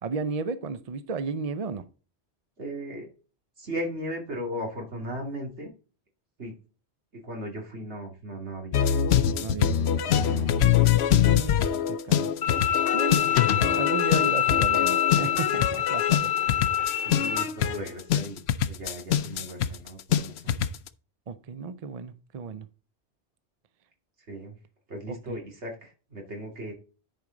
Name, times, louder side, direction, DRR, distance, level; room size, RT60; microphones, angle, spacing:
voice 1, 0.0-1.9 9.4-10.8 11.1-12.3 12.9-16.7 21.3-22.7 25.1-25.4, right 5 dB, 40° right, 0.6 m, -34 dB
voice 2, 2.6-3.1 3.6-5.7 6.4-6.6 7.1-8.9 17.0-18.4 18.7-20.6 24.3-24.6 24.9-26.7, equal, 85° right, 2.8 m, -37 dB
sound 1, 8.7-20.9, left 10 dB, 70° left, 0.9 m, -24 dB
Bowed string instrument, 12.4-17.4, left 10 dB, 55° left, 1.1 m, -26 dB
10.5 x 4.9 x 3.9 m
omnidirectional pair, 1.1 m